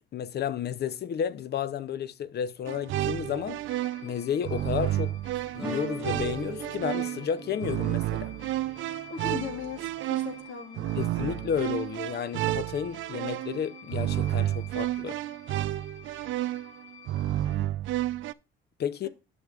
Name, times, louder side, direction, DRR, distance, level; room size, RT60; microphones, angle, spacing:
voice 1, 0.1-3.6 4.0-5.2 5.5-8.3 11.0-15.2 18.8-19.1, left 8 dB, 55° left, 0.6 m, -32 dB
sound 1, 2.7-18.3, right 14 dB, 75° right, 0.4 m, -31 dB
sound 2, 3.7-17.6, left 7 dB, 35° left, 1.1 m, -52 dB
sound 3, 5.6-10.4, right 1 dB, ahead, 1.7 m, -42 dB
voice 2, 9.1-11.0, left 8 dB, 75° left, 1.8 m, -38 dB
10.5 x 6.1 x 2.4 m
cardioid pair, 90°, 20 cm